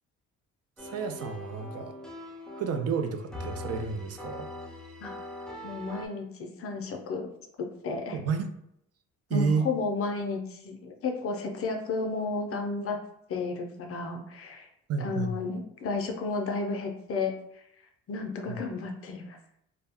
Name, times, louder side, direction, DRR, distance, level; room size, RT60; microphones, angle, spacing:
sound 1, 0.8-6.1, left 2 dB, ahead, 0.5 m, -42 dB
voice 1, 0.8-1.9 2.6-4.5 8.1-8.5 9.3-9.7 14.9-15.4 18.5-18.6, right 5 dB, 55° right, 6 dB, 0.4 m, -30 dB
voice 2, 5.6-7.3 7.8-8.2 9.3-13.0 13.3-14.7 15.0-17.6 18.1-19.4, left 4 dB, 50° left, 3 dB, 0.5 m, -32 dB
2.3 x 2.1 x 3.5 m, 0.75 s
cardioid pair, 90°, 30 cm